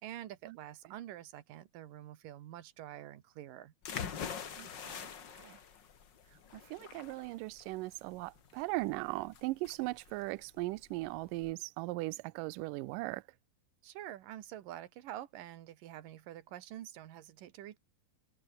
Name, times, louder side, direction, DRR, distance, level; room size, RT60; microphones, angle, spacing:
voice 1, 0.0-3.7 13.8-17.8, right 12 dB, 65° right, 2.9 m, -47 dB
sound 1, 3.8-11.5, left 7 dB, 50° left, 1.4 m, -45 dB
voice 2, 4.6-5.6 6.3-13.2, right 21 dB, 85° right, 1.9 m, -39 dB
omnidirectional pair, 4.4 m